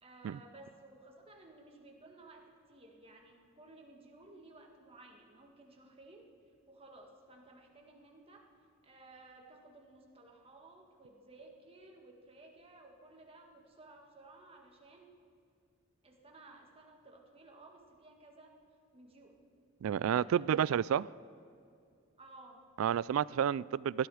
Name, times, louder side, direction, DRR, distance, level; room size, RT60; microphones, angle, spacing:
voice 1, 0.0-6.2 6.7-8.5 8.8-15.1 16.0-18.5 18.9-19.4 20.0-20.6 22.2-22.6, right 2 dB, 30° right, 1.9 m, -56 dB
voice 2, 19.8-21.1 22.8-24.1, right 9 dB, 75° right, 0.3 m, -30 dB
19.0 x 13.0 x 5.0 m
head